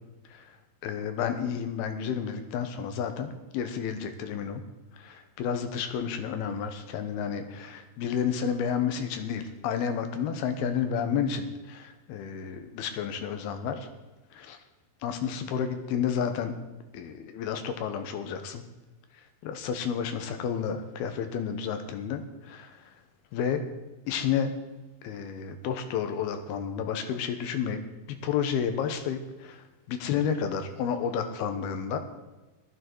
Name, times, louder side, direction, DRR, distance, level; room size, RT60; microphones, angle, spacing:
voice 1, 0.8-4.6 5.0-13.9 14.3-14.6 15.0-16.5 16.9-18.6 19.4-22.8 23.3-23.6 24.1-24.5 25.0-27.8 28.2-32.0, left 7 dB, 85° left, 7 dB, 3.0 m, -31 dB
15.0 x 12.0 x 4.7 m, 1.1 s
omnidirectional pair, 4.4 m